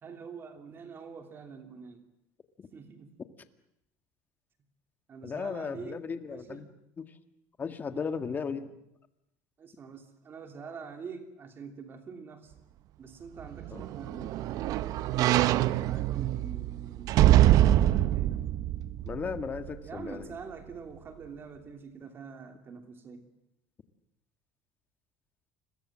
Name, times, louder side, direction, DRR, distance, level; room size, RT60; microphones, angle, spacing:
voice 1, 0.0-2.0 2.7-3.2 5.1-6.7 7.9-8.1 9.6-12.5 13.0-14.4 15.0-18.5 19.8-23.3, right 5 dB, 30° right, 6 dB, 3.0 m, -45 dB
voice 2, 5.2-6.7 7.0-7.1 7.6-8.7 13.7-13.8 19.0-20.3, left 5 dB, 25° left, 9 dB, 1.9 m, -35 dB
sound 1, 13.4-19.8 20.2-20.3, right 13 dB, 55° right, 0.9 m, -25 dB
29.5 x 22.5 x 7.5 m, 0.82 s
cardioid pair, 130°, 7 cm